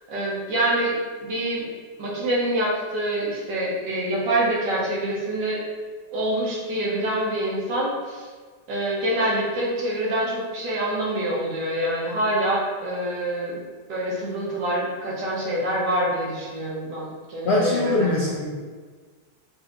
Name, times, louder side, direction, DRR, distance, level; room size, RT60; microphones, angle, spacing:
voice 1, 0.1-0.9 1.2-1.7 2.0-5.6 6.1-8.3 8.7-13.6 13.9-18.3, right 1 dB, 75° right, -5 dB, 1.7 m, -26 dB
voice 2, 17.4-18.6, left 1 dB, 80° left, -5 dB, 0.5 m, -22 dB
6.6 x 2.7 x 2.5 m, 1.5 s
omnidirectional pair, 1.9 m